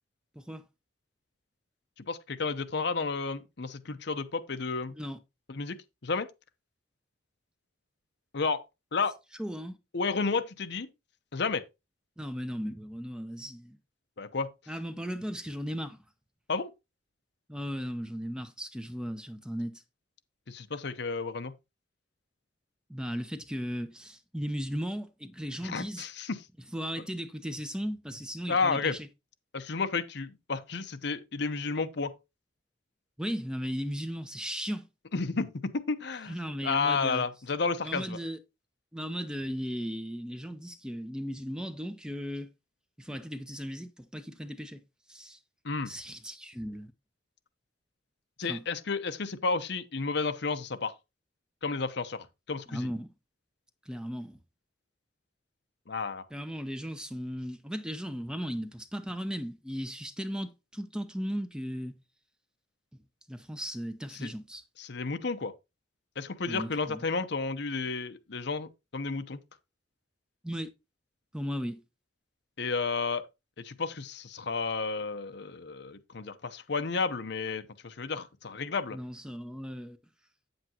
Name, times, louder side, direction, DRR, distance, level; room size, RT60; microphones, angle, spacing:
voice 1, 2.1-5.0 5.5-5.8 6.0-6.3 8.3-8.6 8.9-9.2 9.9-10.9 11.3-11.6 14.2-14.5 16.5-16.7 20.5-21.5 25.6-26.4 28.5-29.0 29.5-32.1 35.1-36.4 36.6-38.2 45.6-45.9 48.4-50.9 51.6-52.9 55.9-56.3 64.1-64.3 64.8-65.5 66.2-69.4 72.6-73.2 73.6-79.0, left 4 dB, 60° left, 0.8 m, -32 dB
voice 2, 9.4-9.8 12.2-13.8 14.7-16.0 17.5-19.8 22.9-26.1 26.7-29.1 33.2-34.9 36.3-37.3 37.8-38.4 38.9-42.5 43.0-44.8 45.1-45.4 45.9-46.9 48.5-48.7 52.7-53.1 53.9-54.4 56.3-62.0 62.9-63.0 63.3-64.6 66.5-67.0 70.4-70.7 71.3-71.8 78.9-80.0, equal, 5° right, 0.7 m, -36 dB
8.7 x 7.9 x 2.9 m
head